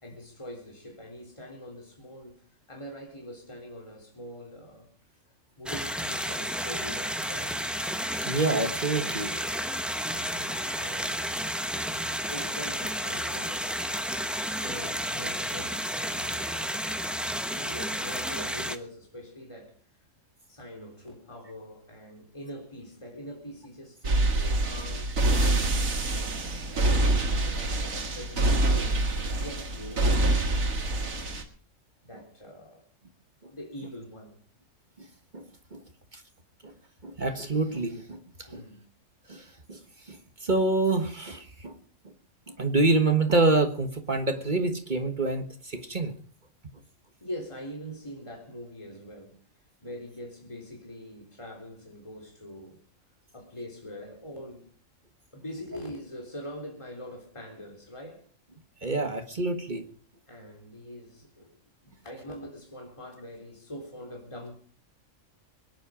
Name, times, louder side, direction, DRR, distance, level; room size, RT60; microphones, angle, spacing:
voice 1, 0.0-2.4 2.7-4.9 5.6-7.6 10.2-11.3 12.3-13.8 14.6-16.7 17.5-19.8 20.5-25.2 25.6-25.8 26.7-30.5 32.0-32.8 33.5-34.4 38.5-38.8 47.2-49.4 49.8-52.8 53.3-54.7 55.3-58.3 60.3-64.6, equal, 20° left, 3.7 m, -43 dB
sound 1, 5.7-18.8, equal, ahead, 0.9 m, -31 dB
voice 2, 8.2-9.3 33.4-33.5 35.0-35.1 35.3-35.4 35.7-35.8 36.1-36.2 36.6-36.7 37.0-38.2 38.5-38.6 39.3-39.8 40.1-41.8 42.5-46.1 58.8-59.8, right 3 dB, 35° right, 1.6 m, -27 dB
sound 2, 24.0-31.4, right 2 dB, 85° right, 2.3 m, -26 dB
23.0 x 10.5 x 5.1 m
omnidirectional pair, 1.4 m